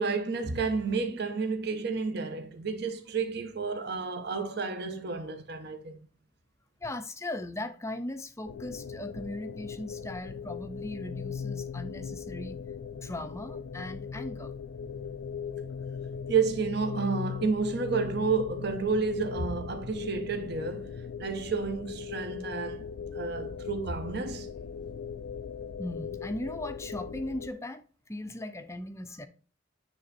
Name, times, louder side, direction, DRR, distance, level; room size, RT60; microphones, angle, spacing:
voice 1, 0.0-6.0 16.3-22.9 23.1-24.5, right 5 dB, 55° right, 0.9 m, -31 dB
voice 2, 6.8-12.6 12.9-14.6 25.8-27.8 28.1-29.3, left 1 dB, 15° left, 0.5 m, -38 dB
sound 1, 8.4-27.5, left 6 dB, 85° left, 0.4 m, -39 dB
9.4 x 3.4 x 4.1 m
head